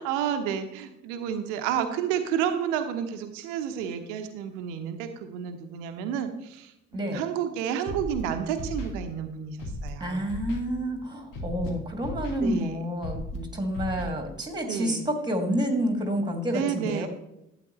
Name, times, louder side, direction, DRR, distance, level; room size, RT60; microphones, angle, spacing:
voice 1, 0.0-10.4 12.4-12.8 14.7-15.0 16.5-17.1, right 9 dB, 65° right, 7 dB, 1.0 m, -31 dB
Scratching (performance technique), 7.9-8.2 8.6-8.9 9.6-9.9 10.3-10.6 11.3-11.7 12.0-12.4 13.0-13.4 13.7-14.0, left 1 dB, 60° left, 2.3 m, -35 dB
voice 2, 10.0-17.1, equal, 10° right, 4 dB, 2.2 m, -29 dB
12.0 x 8.7 x 3.1 m, 0.87 s
figure-of-eight pair, 50°, 39 cm